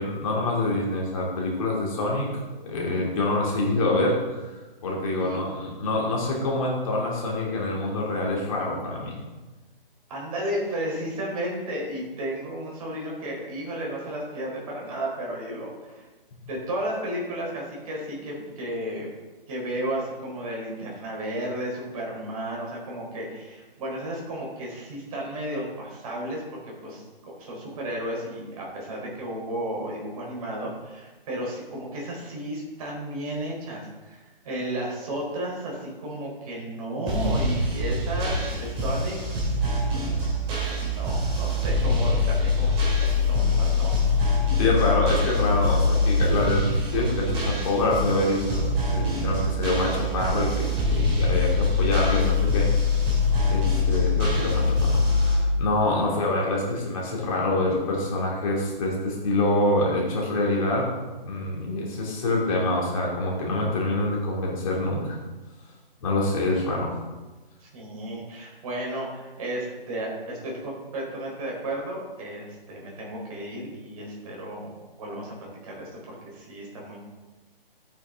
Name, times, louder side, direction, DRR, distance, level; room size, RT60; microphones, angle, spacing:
voice 1, 0.0-2.3 2.6-4.5 4.8-9.1 44.6-52.7 53.5-60.9 61.2-65.2 66.0-66.9, left 2 dB, 35° left, -2 dB, 3.3 m, -26 dB
voice 2, 10.1-16.1 16.5-19.1 19.5-26.4 26.8-39.2 40.2-40.5 40.9-43.9 67.6-74.7 75.0-77.0, right 1 dB, 40° right, -2 dB, 4.3 m, -33 dB
sound 1, 37.1-55.4, left 2 dB, 20° right, 3.2 m, -24 dB
12.5 x 9.2 x 3.8 m, 1.2 s
figure-of-eight pair, 145°, 29 cm